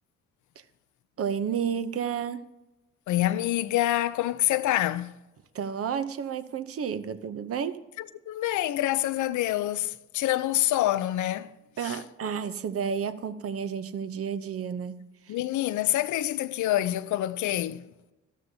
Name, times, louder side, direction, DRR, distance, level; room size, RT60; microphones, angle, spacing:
voice 1, 1.2-2.5 5.5-7.8 11.8-15.1, right 7 dB, 50° right, 0.7 m, -31 dB
voice 2, 3.1-5.2 8.0-11.5 11.8-12.0 15.3-17.8, left 14 dB, 75° left, 0.5 m, -26 dB
12.5 x 12.5 x 2.7 m
cardioid pair, 90°, 30 cm